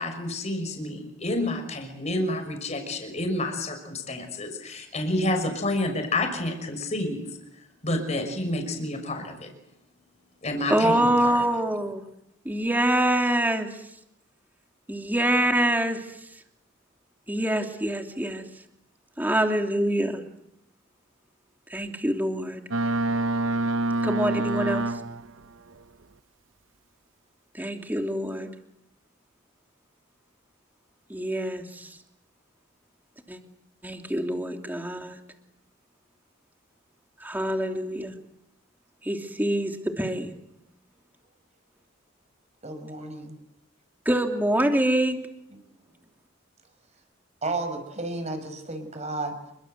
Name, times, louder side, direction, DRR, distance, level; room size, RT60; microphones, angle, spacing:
voice 1, 0.0-7.3 7.8-9.5 10.4-11.4, left 1 dB, 35° left, 5 dB, 5.9 m, -29 dB
voice 2, 10.7-12.0 12.4-13.7 14.9-16.0 17.3-18.4 19.2-20.2 21.7-22.6 24.0-24.9 27.5-28.5 31.1-31.9 33.3-33.4 33.8-35.2 37.2-38.1 39.0-40.4 44.0-45.2, right 1 dB, 10° right, 3 dB, 3.0 m, -25 dB
Boat Water vehicle, 22.7-25.4, right 2 dB, 80° right, 1.0 m, -26 dB
voice 3, 42.6-43.4 45.5-45.6 47.4-49.3, right 2 dB, 35° right, 7 dB, 6.2 m, -32 dB
29.0 x 24.0 x 8.0 m, 0.80 s
head